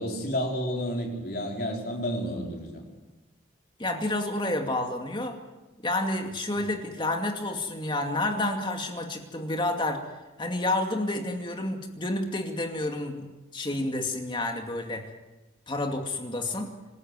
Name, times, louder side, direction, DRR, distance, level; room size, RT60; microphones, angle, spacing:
voice 1, 0.0-2.8, equal, 50° left, 0 dB, 4.7 m, -31 dB
voice 2, 3.8-5.4 5.8-10.0 10.4-15.1 15.7-16.7, left 2 dB, 25° left, 3 dB, 2.4 m, -30 dB
27.0 x 13.5 x 9.7 m, 1.1 s
head